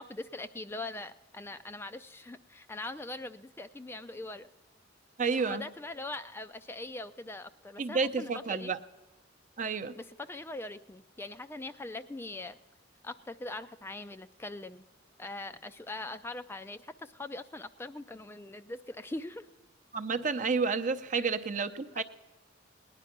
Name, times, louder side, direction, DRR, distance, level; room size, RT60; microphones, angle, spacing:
voice 1, 0.0-4.5 5.4-8.7 10.0-12.6 13.0-14.8 15.2-19.5 21.2-21.3 22.0-22.1, left 2 dB, 10° left, 9 dB, 0.3 m, -42 dB
voice 2, 5.2-5.6 7.8-8.8 9.6-10.0 19.9-22.0, right 4 dB, 40° right, 9 dB, 0.7 m, -30 dB
18.5 x 10.5 x 5.9 m, 1.2 s
head